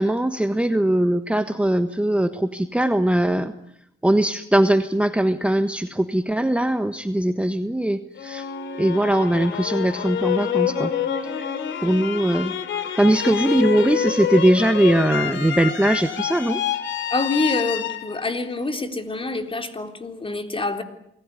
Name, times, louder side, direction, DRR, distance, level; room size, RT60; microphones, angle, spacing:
voice 1, 0.0-3.5 4.0-8.5 8.8-10.9 11.3-11.5 11.8-12.5 13.0-16.6, right 1 dB, 5° right, 8 dB, 1.4 m, -20 dB
sound 1, 8.2-19.2, left 9 dB, 70° left, 2.8 m, -27 dB
voice 2, 17.1-20.8, left 3 dB, 25° left, 6 dB, 3.8 m, -26 dB
28.5 x 19.5 x 9.9 m, 0.77 s
cardioid pair, 90°, 20 cm